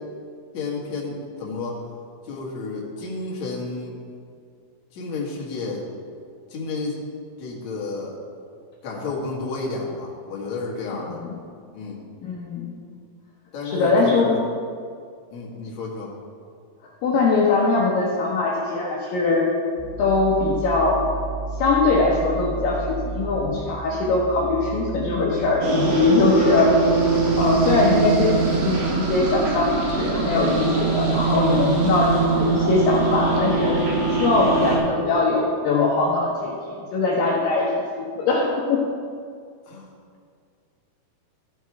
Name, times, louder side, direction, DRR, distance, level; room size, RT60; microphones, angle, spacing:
voice 1, 0.5-1.8 2.3-4.0 4.9-5.8 6.5-7.0 7.4-8.2 8.8-11.2 11.7-12.0 13.5-14.4 15.3-16.1 39.7-39.8, left 3 dB, 55° left, -4 dB, 2.7 m, -31 dB
voice 2, 12.2-12.7 13.6-14.4 17.0-19.5 20.0-21.0 21.6-33.8 34.2-37.7 38.0-38.8, left 3 dB, 70° left, -4 dB, 2.5 m, -21 dB
sound 1, 19.8-25.7, right 4 dB, 45° right, 1.4 m, -33 dB
sound 2, 25.6-34.8, right 4 dB, 60° right, 3.3 m, -22 dB
13.5 x 6.6 x 4.7 m, 2.2 s
omnidirectional pair, 4.5 m